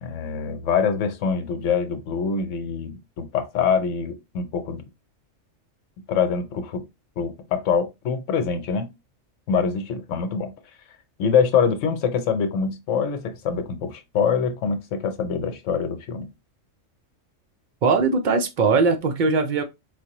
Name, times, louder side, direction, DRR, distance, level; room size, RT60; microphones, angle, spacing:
voice 1, 0.0-4.8 6.1-6.8 7.2-8.9 9.5-10.5 11.2-16.3, left 6 dB, 75° left, 1.0 m, -24 dB
voice 2, 17.8-19.6, right 4 dB, 60° right, 0.5 m, -20 dB
4.7 x 2.1 x 2.8 m
omnidirectional pair, 1.3 m